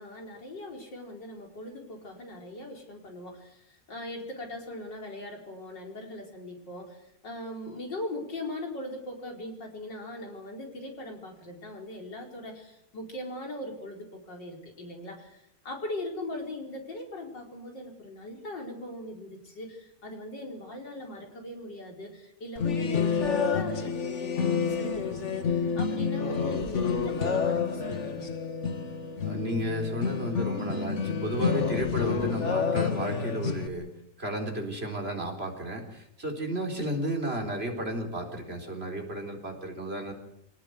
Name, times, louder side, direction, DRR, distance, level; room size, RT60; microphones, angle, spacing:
voice 1, 0.0-28.3, left 1 dB, 90° left, 2 dB, 5.2 m, -40 dB
sound 1, 22.6-33.7, left 6 dB, 45° left, 1.8 m, -29 dB
voice 2, 29.2-33.9 34.2-40.1, right 1 dB, 35° right, 2 dB, 4.4 m, -33 dB
25.5 x 18.5 x 8.2 m, 0.79 s
omnidirectional pair, 1.9 m